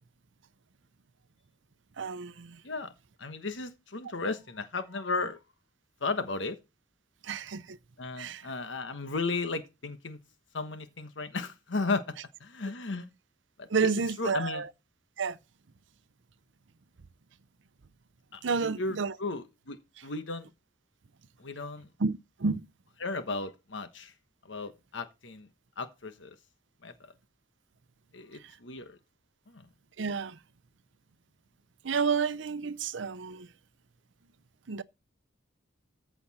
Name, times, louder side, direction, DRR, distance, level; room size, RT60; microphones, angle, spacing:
voice 1, 2.0-2.6 7.2-7.8 8.2-8.5 13.7-14.7 15.2-15.4 18.4-19.1 22.0-22.7 28.4-28.5 30.0-30.4 31.8-33.5 34.7-34.8, right 5 dB, 85° right, 0.6 m, -30 dB
voice 2, 3.2-5.4 6.0-6.6 8.0-10.2 10.5-12.0 12.4-13.0 13.6-13.9 14.2-14.6 18.3-20.5 21.4-21.9 23.0-24.1 24.4-25.5 25.8-26.3 26.8-26.9 28.1-29.0 29.5-29.7, left 3 dB, 85° left, 1.2 m, -35 dB
14.5 x 7.0 x 4.2 m
head